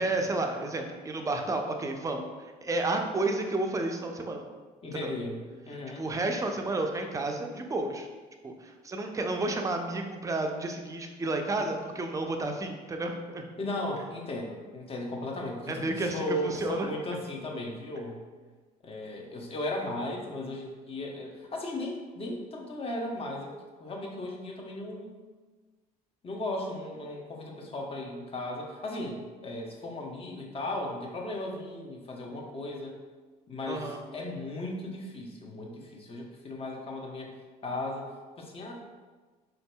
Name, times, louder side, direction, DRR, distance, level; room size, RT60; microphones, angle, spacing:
voice 1, 0.0-2.3 2.6-4.4 5.0-5.1 6.0-8.1 8.4-13.4 15.7-16.9 33.7-34.0, right 2 dB, 20° right, 3 dB, 0.4 m, -31 dB
voice 2, 4.8-6.0 13.6-18.2 18.8-23.5 23.8-25.1 26.2-33.0 33.5-37.4 37.6-38.1 38.4-38.7, left 1 dB, 35° left, 0 dB, 0.7 m, -36 dB
4.0 x 2.6 x 2.2 m, 1.4 s
supercardioid pair, 70°, 18 cm